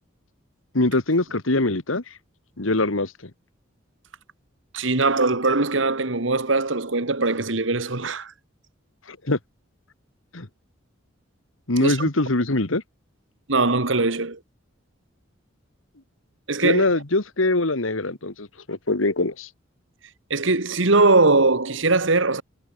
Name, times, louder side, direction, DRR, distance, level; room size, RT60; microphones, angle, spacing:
voice 1, 0.7-2.0 2.6-3.3 9.1-9.4 10.3-10.5 11.7-12.8 16.6-19.5, left 2 dB, 85° left, 2.0 m, -23 dB
voice 2, 4.7-8.3 11.8-12.1 13.5-14.4 16.5-16.9 20.3-22.4, right 3 dB, 70° right, 1.8 m, -21 dB
head